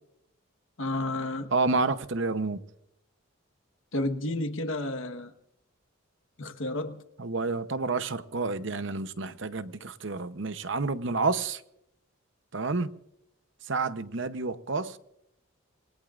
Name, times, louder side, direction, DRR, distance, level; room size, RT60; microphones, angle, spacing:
voice 1, 0.8-1.5 3.9-5.3 6.4-7.0, left 2 dB, 70° left, 1.3 m, -31 dB
voice 2, 1.5-2.6 7.2-11.6 12.5-12.9 13.7-15.0, right 3 dB, 60° right, 0.8 m, -29 dB
28.0 x 20.5 x 2.5 m
head